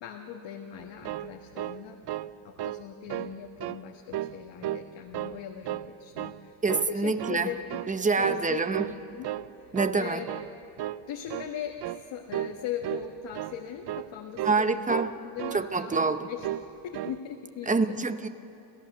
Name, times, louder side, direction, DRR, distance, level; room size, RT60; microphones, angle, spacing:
voice 1, 0.0-2.0 2.4-6.6 6.9-7.6 8.2-9.3 9.6-10.3 11.1-16.5 16.8-17.9, left 9 dB, 80° left, 1 dB, 1.5 m, -39 dB
sound 1, 0.8-2.3 2.6-2.8 3.1-3.8 4.1-4.9 5.1-5.9 6.2-6.4 6.7-7.4 7.7-7.9 8.2-8.5 8.7-9.5 9.7-10.0 10.3-10.5 10.8-11.0 11.3-11.5 11.8-12.0 12.3-12.6 12.8-13.1 13.3-13.6 13.9-14.1 14.4-14.6 14.9-15.7 15.9-16.1 16.4-16.7 16.9-17.2, right 13 dB, 60° right, 0.6 m, -34 dB
voice 2, 6.6-7.5 7.9-8.8 9.7-10.2 14.4-15.1 15.5-16.3 17.7-18.3, right 4 dB, 20° right, 10 dB, 0.7 m, -26 dB
29.0 x 14.5 x 6.6 m, 2.9 s
cardioid pair, 145°, 43 cm